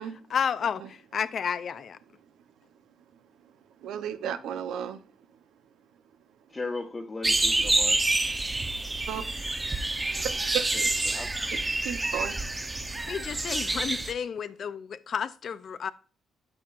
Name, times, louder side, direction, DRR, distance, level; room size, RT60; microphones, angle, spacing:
voice 1, 0.3-2.0 13.1-15.9, left 7 dB, 55° left, 0.5 m, -31 dB
voice 2, 2.7-5.6 5.9-6.6 9.1-9.3 10.2-10.7 11.5-12.8, right 9 dB, 85° right, 0.8 m, -37 dB
voice 3, 6.5-8.1 10.7-11.4, left 3 dB, 25° left, 1.2 m, -37 dB
sound 1, 7.2-14.1, right 2 dB, 20° right, 0.8 m, -28 dB
12.5 x 5.8 x 2.5 m
cardioid pair, 90°, 0 cm